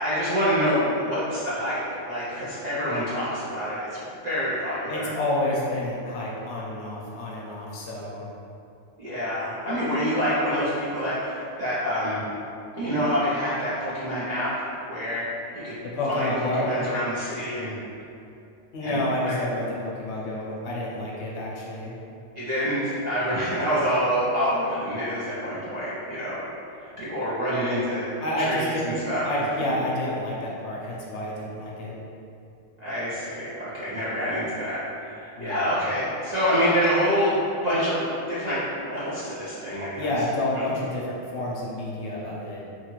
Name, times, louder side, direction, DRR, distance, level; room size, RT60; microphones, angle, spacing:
voice 1, 0.0-5.1 5.5-5.6 9.0-12.2 12.8-14.6 14.9-15.3 15.5-15.8 16.1-17.7 18.8-19.4 22.4-26.4 26.8-28.1 28.4-28.7 29.1-29.4 32.8-37.4 37.6-40.1 40.5-40.7, equal, 50° right, -11 dB, 0.5 m, -27 dB
voice 2, 4.9-8.3 15.8-16.8 18.7-21.9 28.2-28.9 29.2-31.9 35.4-35.8 40.0-42.6, left 1 dB, 70° left, -4 dB, 0.8 m, -29 dB
2.7 x 2.4 x 2.9 m, 2.7 s
omnidirectional pair, 1.3 m